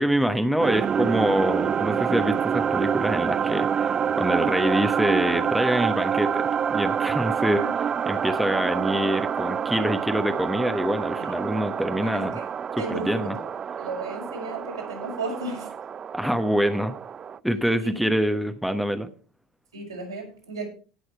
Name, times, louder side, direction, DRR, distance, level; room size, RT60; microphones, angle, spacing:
voice 1, 0.0-7.6 8.1-12.4 12.9-13.4 16.1-17.0 17.4-19.1, equal, ahead, 8 dB, 1.1 m, -25 dB
sound 1, 0.6-17.4, right 7 dB, 30° right, 0.4 m, -27 dB
voice 2, 12.8-13.3 13.8-15.7 17.8-18.0 19.7-20.7, right 2 dB, 85° right, -1 dB, 5.2 m, -34 dB
17.5 x 6.4 x 4.4 m, 0.37 s
figure-of-eight pair, 70°, 2 cm